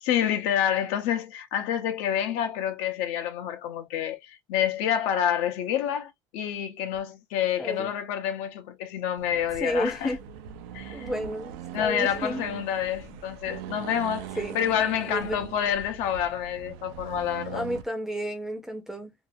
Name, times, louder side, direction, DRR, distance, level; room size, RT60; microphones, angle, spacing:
voice 1, 0.0-10.2 10.7-11.1 11.7-14.3 14.5-17.7, left 9 dB, 65° left, 0.7 m, -28 dB
voice 2, 7.6-7.9 9.6-10.2 10.9-12.4 14.4-14.6 15.1-15.3 17.5-19.1, equal, 5° right, 0.6 m, -31 dB
Accelerating revving vroom, 9.2-17.9, right 9 dB, 85° right, 0.6 m, -41 dB
2.7 x 2.4 x 2.6 m
cardioid pair, 170°, 12 cm